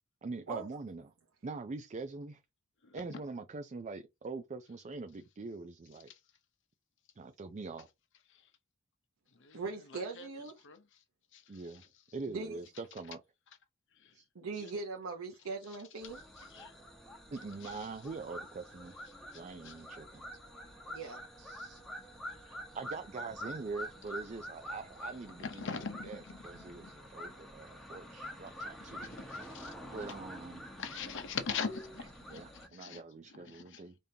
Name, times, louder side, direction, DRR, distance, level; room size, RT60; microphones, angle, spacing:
voice 1, 0.2-1.1 1.4-2.4 2.9-6.1 7.2-7.9 11.5-11.8 12.1-13.2 14.1-14.2 14.5-14.6 17.3-18.9 19.3-20.3 21.4-21.8 22.4-29.4 29.9-30.6 32.3-33.9, right 3 dB, 35° right, 0.4 m, -44 dB
voice 2, 9.5-10.6 12.3-12.6 14.3-16.2 20.9-21.3, right 4 dB, 65° right, 0.8 m, -40 dB
sound 1, 16.0-32.7, equal, ahead, 1.1 m, -47 dB
voice 3, 25.4-26.9 29.0-29.7 30.8-32.4 32.7-33.0 33.5-33.8, left 5 dB, 60° left, 0.8 m, -41 dB
5.2 x 3.5 x 2.8 m
head